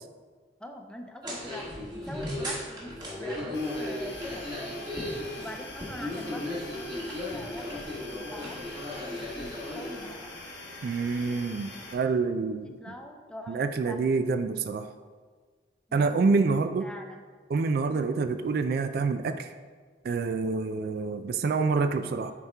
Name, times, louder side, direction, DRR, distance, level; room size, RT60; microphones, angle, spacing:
voice 1, 0.6-1.7 1.9-4.4 5.4-8.6 8.9-10.4 12.5-14.0 16.8-17.3 17.9-18.1, equal, 5° left, 3 dB, 0.5 m, -44 dB
sound 1, 1.2-10.1, left 1 dB, 25° right, 1.4 m, -36 dB
sound 2, 3.5-11.9, left 2 dB, 80° left, 1.1 m, -44 dB
voice 2, 10.8-12.8 13.5-14.9 15.9-16.9 17.5-19.5 20.0-22.3, right 4 dB, 55° right, 9 dB, 0.3 m, -27 dB
8.2 x 4.3 x 3.4 m, 1.5 s
head